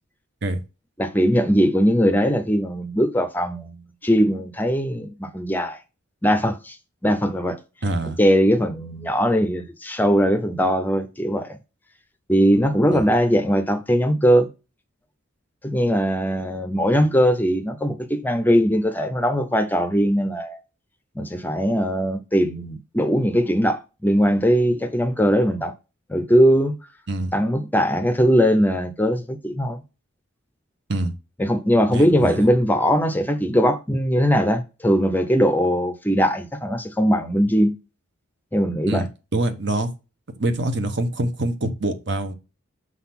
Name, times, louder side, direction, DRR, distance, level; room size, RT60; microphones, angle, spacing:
voice 1, 1.0-5.8 6.2-6.8 7.0-7.6 8.2-11.6 12.3-14.5 15.6-20.6 21.2-25.7 26.1-26.7 27.3-29.8 31.4-37.7 38.5-39.0, equal, 10° left, 0.6 m, -20 dB
voice 2, 7.8-8.2 12.9-13.0 27.1-27.3 30.9-31.1 31.9-32.5 38.9-39.0 39.3-39.9 40.4-42.3, right 1 dB, 55° right, 1.1 m, -25 dB
6.3 x 4.0 x 5.8 m
head